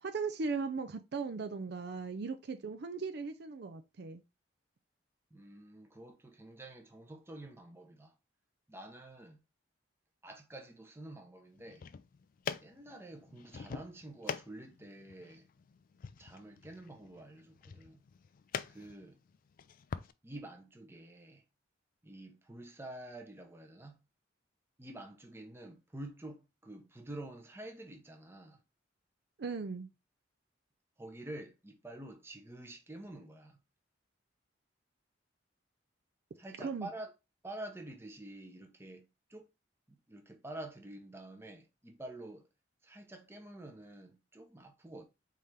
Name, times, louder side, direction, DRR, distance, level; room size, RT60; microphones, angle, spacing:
voice 1, 0.0-4.2 29.4-29.9 36.6-36.9, right 4 dB, 55° right, 0.4 m, -38 dB
voice 2, 5.3-8.1 8.7-9.4 10.2-11.8 12.6-15.5 16.2-18.0 18.7-19.2 20.2-21.4 22.0-24.0 24.8-28.6 31.0-33.6 36.4-37.1 37.4-39.5 39.9-42.4 42.8-45.0, right 1 dB, 15° right, 0.7 m, -48 dB
sound 1, 11.6-20.1, left 6 dB, 45° left, 0.3 m, -45 dB
4.2 x 3.7 x 3.2 m
head